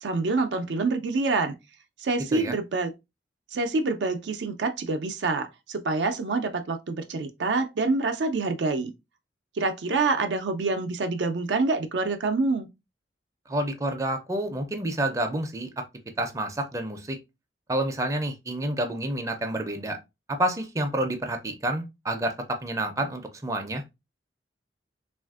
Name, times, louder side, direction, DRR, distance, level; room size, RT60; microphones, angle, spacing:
voice 1, 0.0-1.5 2.0-2.9 3.5-8.9 9.6-12.7, right 3 dB, 80° right, 0.4 m, -26 dB
voice 2, 13.5-15.7 16.2-17.2 17.7-20.0 20.3-23.8, right 1 dB, 20° right, 0.4 m, -29 dB
3.3 x 2.4 x 2.3 m
head